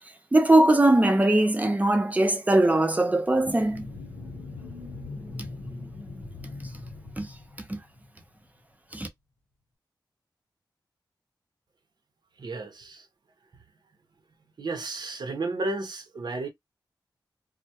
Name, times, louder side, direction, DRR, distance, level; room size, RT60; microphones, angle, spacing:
voice 1, 0.3-3.9 7.2-7.3 7.7-7.8 8.9-9.1, right 1 dB, 20° right, 0.5 m, -20 dB
sound 1, 3.3-8.2, left 3 dB, 50° left, 0.9 m, -40 dB
voice 2, 12.4-13.1 14.6-16.5, right 2 dB, 60° right, 0.7 m, -32 dB
2.2 x 2.1 x 2.8 m
wide cardioid pair, 105°, 8 cm